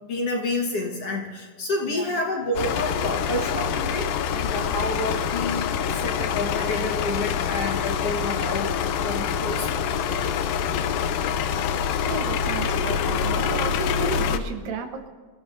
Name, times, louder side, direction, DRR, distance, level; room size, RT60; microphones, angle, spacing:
voice 1, 0.0-9.7, left 2 dB, 50° left, 0 dB, 2.3 m, -29 dB
sound 1, 2.6-14.4, left 7 dB, 85° left, 2.4 m, -25 dB
voice 2, 12.1-15.1, right 5 dB, 80° right, 5 dB, 3.0 m, -33 dB
28.5 x 16.0 x 2.7 m, 1.4 s
omnidirectional pair, 3.9 m